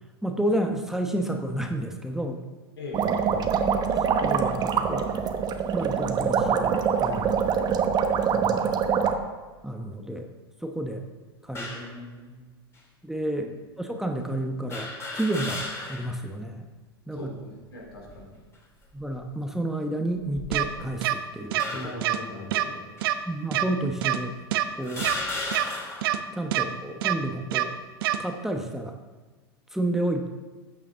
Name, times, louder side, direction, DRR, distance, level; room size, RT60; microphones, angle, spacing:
voice 1, 0.2-2.4 4.0-5.1 5.7-7.3 8.3-8.7 9.6-10.3 10.6-11.1 11.4-11.7 13.0-13.5 13.8-15.6 15.9-16.6 17.1-17.3 18.9-21.6 23.2-24.4 24.8-25.1 26.3-27.8 28.2-29.0 29.7-30.3, right 1 dB, 5° right, 4 dB, 1.0 m, -30 dB
voice 2, 2.8-3.5 7.2-7.5 11.7-12.6 17.1-18.4 21.7-22.8, left 2 dB, 75° left, -2 dB, 3.9 m, -40 dB
sound 1, 2.9-9.1, right 7 dB, 30° right, 1.0 m, -24 dB
sound 2, 11.5-11.9 12.8-12.9 14.7-16.2 16.6-16.7 17.8-18.3 19.0-19.2 20.2-21.0 21.6-22.1 23.0-23.1 24.0-24.1 24.8-26.2, left 2 dB, 20° left, 3.2 m, -35 dB
sound 3, 20.5-20.6 21.0-21.1 21.5-21.6 22.0-22.2 22.5-22.6 23.0-23.1 23.5-23.6 24.0-24.2 24.5-24.6 25.0-25.1 25.5-25.6 26.0-26.2 26.5-26.6 27.0-27.1 27.5-27.6 28.0-28.2, right 14 dB, 60° right, 0.8 m, -24 dB
14.0 x 8.9 x 3.8 m, 1.3 s
figure-of-eight pair, 85°, 13 cm